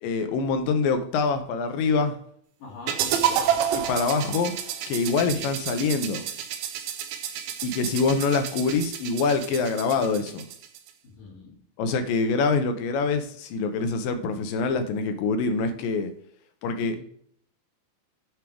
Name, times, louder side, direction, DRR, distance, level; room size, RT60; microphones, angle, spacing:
voice 1, 0.0-2.2 3.9-4.5 4.9-6.2 7.6-10.5 11.8-16.1 16.6-17.0, left 4 dB, 80° left, 8 dB, 2.4 m, -25 dB
voice 2, 2.6-3.6 5.3-5.5 11.0-11.6 16.8-17.0, left 3 dB, 65° left, -5 dB, 3.4 m, -41 dB
sound 1, 2.9-10.9, right 9 dB, 90° right, 2.6 m, -30 dB
9.3 x 3.4 x 4.5 m, 0.63 s
omnidirectional pair, 4.2 m